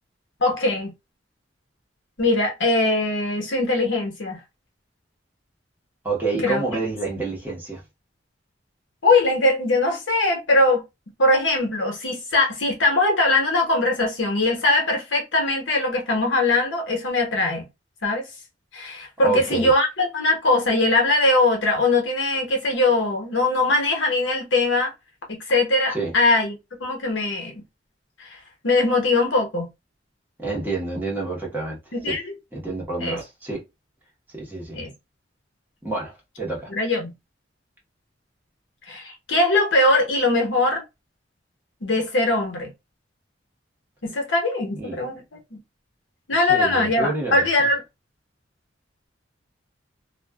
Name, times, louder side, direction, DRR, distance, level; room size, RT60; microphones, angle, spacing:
voice 1, 0.4-0.9 2.2-4.4 6.4-6.8 9.0-10.8 11.2-17.7 18.0-18.3 18.7-24.9 25.3-27.6 28.2-28.4 28.6-29.7 31.9-32.3 33.0-33.2 34.7-34.9 36.7-37.1 38.9-40.8 41.8-42.7 44.0-45.2 45.5-45.6 46.3-47.8, left 2 dB, 85° left, 1.0 m, -21 dB
voice 2, 6.0-7.8 19.2-19.7 25.9-26.1 30.4-31.8 32.1-32.2 32.5-33.6 34.4-34.8 35.8-36.7 44.7-45.0 46.4-47.5, right 3 dB, 10° right, 1.0 m, -28 dB
2.4 x 2.3 x 2.3 m
head